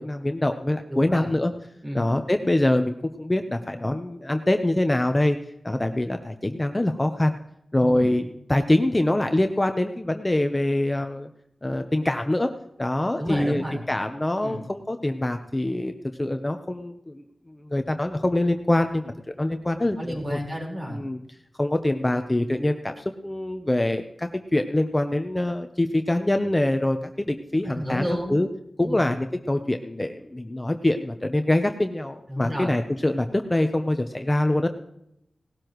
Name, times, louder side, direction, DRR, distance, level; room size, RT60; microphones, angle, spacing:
voice 1, 0.0-1.5 1.9-5.4 5.6-7.4 7.7-11.3 11.6-12.5 12.8-15.9 16.2-20.4 20.9-21.2 21.6-28.5 28.8-34.7, left 1 dB, 20° left, 6 dB, 0.8 m, -24 dB
voice 2, 0.9-1.4 1.8-2.1 7.8-8.1 13.2-13.8 14.4-14.6 20.0-21.0 27.6-28.4 28.8-29.0 32.3-32.7, equal, 35° right, -2 dB, 4.5 m, -31 dB
18.0 x 13.0 x 3.1 m, 0.79 s
wide cardioid pair, 95°, 0 cm